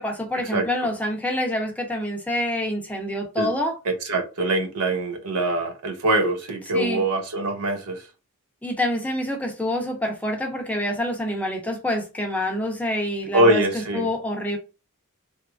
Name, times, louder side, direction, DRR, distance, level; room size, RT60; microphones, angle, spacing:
voice 1, 0.0-3.7 6.7-7.0 8.6-14.6, left 1 dB, 5° left, 0.6 m, -27 dB
voice 2, 3.9-8.0 13.3-14.1, right 1 dB, 80° right, 0.6 m, -23 dB
2.9 x 2.4 x 2.4 m
head